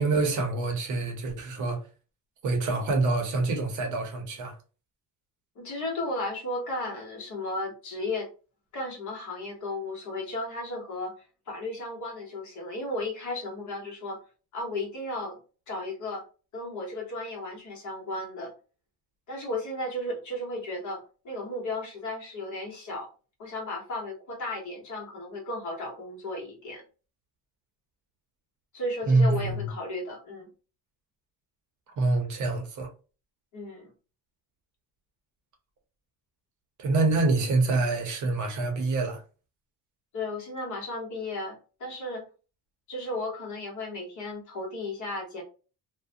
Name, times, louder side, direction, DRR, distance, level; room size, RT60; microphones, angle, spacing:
voice 1, 0.0-1.8 2.4-4.6 29.1-29.7 32.0-32.9 36.8-39.2, right 3 dB, 50° right, 0.7 m, -26 dB
voice 2, 5.6-8.3 8.7-11.1 11.5-14.2 14.5-15.4 15.7-16.2 16.5-18.5 19.3-23.1 23.4-26.8 28.7-30.5 33.5-33.9 37.4-37.5 40.1-42.2 42.9-45.4, left 2 dB, 50° left, 1.1 m, -34 dB
2.4 x 2.1 x 2.6 m
cardioid pair, 160°, 39 cm